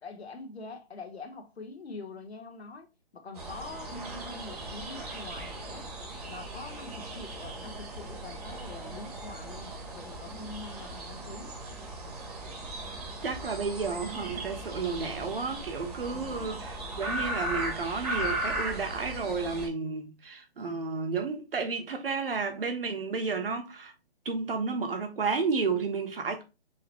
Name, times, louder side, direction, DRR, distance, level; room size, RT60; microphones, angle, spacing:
voice 1, 0.0-5.9 6.3-11.6 16.1-16.7, left 3 dB, 80° left, 1.1 m, -44 dB
sound 1, 3.4-19.7, right 1 dB, 35° right, 1.2 m, -37 dB
voice 2, 13.2-23.9 24.2-26.4, right 4 dB, 60° right, 1.3 m, -32 dB
4.7 x 3.0 x 3.0 m
hypercardioid pair, 165°, 31 cm